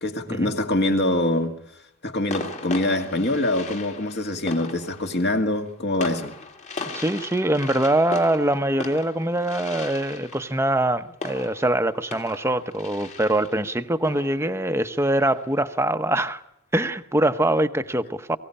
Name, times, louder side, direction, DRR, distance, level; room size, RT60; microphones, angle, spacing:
voice 1, 0.0-1.6 2.0-6.4, left 1 dB, 50° left, 2.2 m, -24 dB
sound 1, 0.8-1.4 2.3-15.7, left 3 dB, 30° left, 2.2 m, -38 dB
voice 2, 6.9-16.4 16.7-18.4, right 1 dB, 10° right, 0.9 m, -23 dB
23.0 x 16.5 x 10.0 m
head